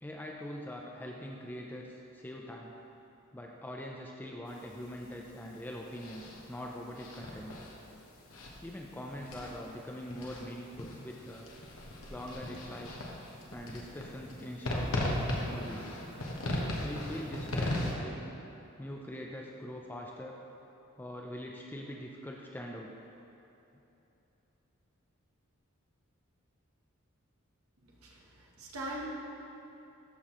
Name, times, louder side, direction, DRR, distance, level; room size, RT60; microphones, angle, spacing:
voice 1, 0.0-2.7 3.3-7.6 8.6-11.5 12.1-13.0 13.5-15.9 16.8-18.2 18.8-20.4 21.0-22.9, equal, 10° left, 0 dB, 0.4 m, -43 dB
sound 1, 4.5-17.9, left 1 dB, 75° left, 1.1 m, -38 dB
voice 2, 28.0-29.0, right 1 dB, 90° right, -3 dB, 1.1 m, -41 dB
13.0 x 5.6 x 3.0 m, 3.0 s
head